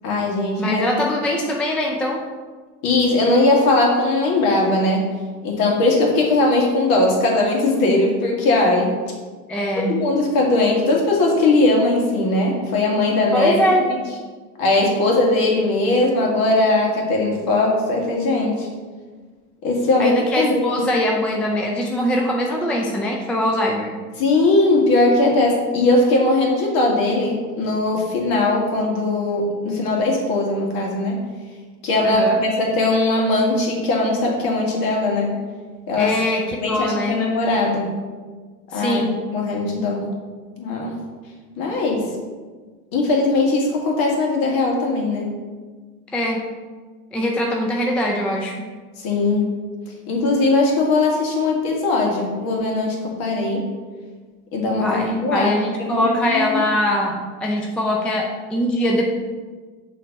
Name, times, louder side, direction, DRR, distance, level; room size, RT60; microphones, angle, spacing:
voice 1, 0.0-0.8 2.8-5.1 5.4-8.9 9.9-13.5 14.6-18.7 19.6-20.6 24.2-31.2 31.8-35.3 35.9-36.2 36.6-37.9 38.7-39.0 39.3-40.1 40.6-41.0 41.6-42.0 42.9-45.3 49.0-49.5 50.1-53.7 54.5-55.5 55.8-56.6, left 2 dB, 50° left, -1 dB, 1.9 m, -19 dB
voice 2, 0.6-2.2 9.5-10.0 13.3-13.9 20.0-24.0 32.0-32.4 36.0-37.2 38.7-39.2 46.1-46.4 47.1-48.7 54.8-59.1, equal, 5° left, 0 dB, 0.4 m, -22 dB
6.6 x 3.4 x 5.3 m, 1.4 s
hypercardioid pair, 95°, 46 cm